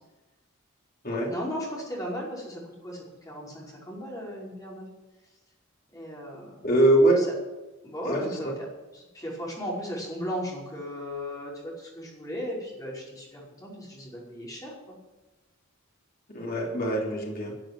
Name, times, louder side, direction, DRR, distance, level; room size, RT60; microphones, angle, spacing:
voice 1, 1.1-4.9 5.9-6.6 7.1-7.3 7.8-8.5 8.9-15.0, equal, 15° left, -4 dB, 5.2 m, -36 dB
voice 2, 6.6-7.2 8.0-8.5 16.3-17.5, right 1 dB, 40° left, -2 dB, 3.3 m, -23 dB
14.0 x 7.7 x 9.0 m, 1.1 s
head